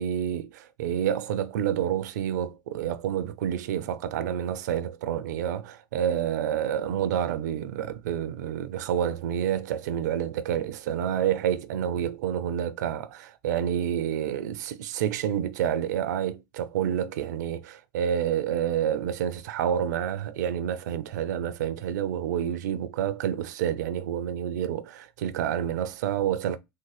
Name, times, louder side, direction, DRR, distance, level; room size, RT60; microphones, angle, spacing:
voice 1, 0.0-26.6, right 9 dB, 75° right, 0.4 m, -28 dB
3.7 x 2.0 x 3.3 m
hypercardioid pair, 80°, 10 cm